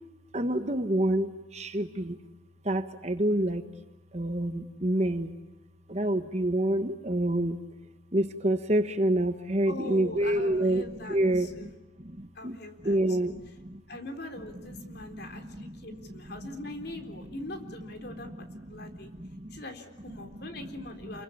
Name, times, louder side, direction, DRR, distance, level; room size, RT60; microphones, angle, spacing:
voice 1, 0.3-2.2 2.6-3.6 4.1-5.3 5.9-7.6 8.1-11.7 12.0-12.6 12.8-13.8 14.7-16.1 18.4-19.6 20.2-20.3, right 1 dB, 35° right, 8 dB, 1.4 m, -28 dB
voice 2, 9.7-11.7 12.4-13.3 13.9-18.3 18.7-19.1 19.5-21.2, left 2 dB, 55° left, 5 dB, 3.8 m, -42 dB
29.5 x 22.5 x 8.6 m, 1.1 s
head